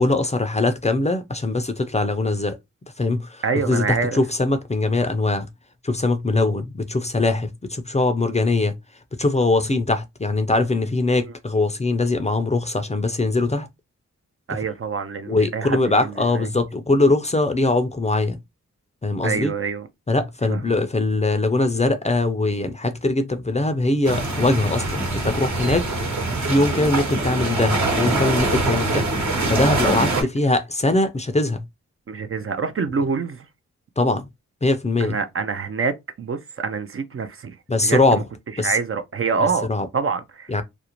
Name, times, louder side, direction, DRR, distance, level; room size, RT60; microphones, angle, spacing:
voice 1, 0.0-2.6 3.0-5.5 5.8-8.7 9.1-13.7 15.3-18.4 19.0-19.5 20.1-26.1 26.4-29.1 29.5-31.6 34.0-34.3 34.6-35.1 37.7-38.2 38.6-38.8 39.7-39.9 40.5-40.6, left 2 dB, 20° left, 0.4 m, -21 dB
voice 2, 3.4-4.2 11.2-11.3 14.5-16.5 19.2-19.9 20.5-20.8 29.8-30.3 32.1-33.5 35.0-37.6 37.8-38.2 38.6-39.7 39.9-40.6, right 5 dB, 45° right, 0.4 m, -26 dB
sound 1, 24.0-30.2, right 2 dB, 60° right, 1.1 m, -23 dB
2.5 x 2.0 x 2.9 m
cardioid pair, 40°, 32 cm